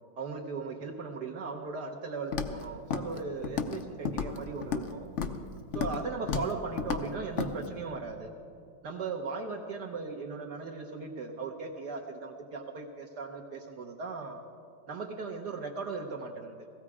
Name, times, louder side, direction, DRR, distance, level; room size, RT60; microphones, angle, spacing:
voice 1, 0.2-5.1 5.7-8.3 8.8-14.4 14.9-16.6, right 4 dB, 60° right, 1 dB, 1.4 m, -38 dB
Walk footsteps, 2.3-2.6 2.9-3.2 3.4-3.8 4.1-4.9 5.2-5.4 5.7-6.0 6.3-6.5 6.8-7.0 7.4-7.5, left 6 dB, 55° left, 0.8 m, -32 dB
16.5 x 16.0 x 4.8 m, 2.4 s
omnidirectional pair, 2.1 m